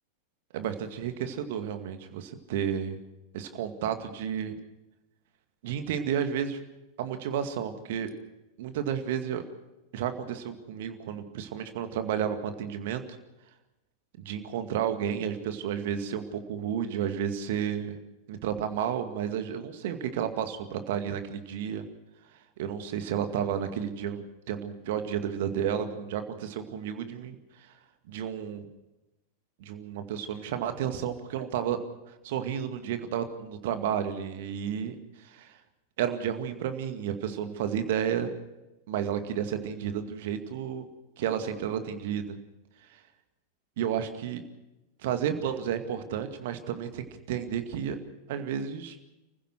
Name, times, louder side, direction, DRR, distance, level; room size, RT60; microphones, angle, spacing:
voice 1, 0.5-3.0 3.3-4.6 5.6-6.6 7.0-8.1 8.6-9.4 9.9-13.0 14.2-18.0 18.3-21.8 22.6-27.4 28.1-28.7 29.6-31.8 32.2-35.6 36.0-38.3 38.9-40.9 41.2-42.4 42.9-43.0 43.8-44.4 45.0-48.0 48.3-49.0, right 9 dB, 55° right, 8 dB, 2.1 m, -32 dB
29.5 x 15.5 x 6.3 m, 0.99 s
figure-of-eight pair, 90°, 0 cm